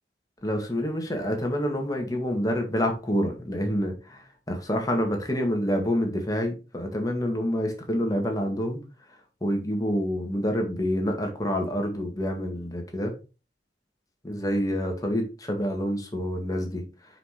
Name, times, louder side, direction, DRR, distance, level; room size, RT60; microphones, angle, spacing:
voice 1, 0.4-8.8 9.1-13.1 14.2-16.9, equal, 20° left, 2 dB, 1.8 m, -27 dB
5.8 x 4.9 x 4.8 m, 0.31 s
head